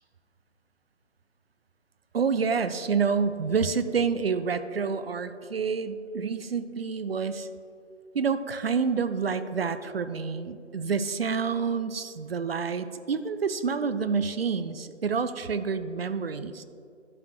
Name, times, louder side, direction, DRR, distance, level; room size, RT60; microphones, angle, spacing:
voice 1, 2.1-7.5 8.1-16.6, right 5 dB, 55° right, 12 dB, 0.5 m, -28 dB
11.5 x 6.7 x 3.2 m, 2.4 s
figure-of-eight pair, 150°, 36 cm